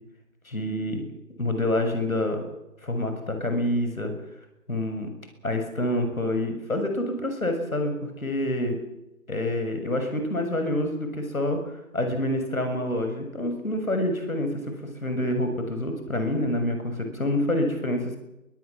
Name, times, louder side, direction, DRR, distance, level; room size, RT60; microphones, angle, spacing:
voice 1, 0.5-1.0 1.4-2.4 2.8-4.1 4.7-5.1 5.4-8.8 9.3-14.7 15.0-18.2, left 1 dB, 70° left, 6 dB, 7.2 m, -27 dB
23.5 x 20.5 x 7.6 m, 0.91 s
figure-of-eight pair, 175°, 43 cm